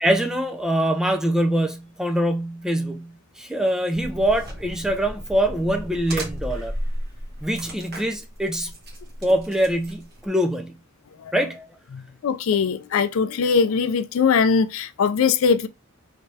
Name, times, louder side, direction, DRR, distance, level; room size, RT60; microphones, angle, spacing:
voice 1, 0.0-6.7 7.4-8.7 9.2-10.8 11.3-11.7, right 1 dB, 5° right, 0.4 m, -24 dB
sound 1, 3.9-10.3, equal, 45° right, 1.2 m, -34 dB
voice 2, 11.9-15.7, left 5 dB, 65° left, 0.4 m, -21 dB
3.3 x 3.1 x 2.7 m
head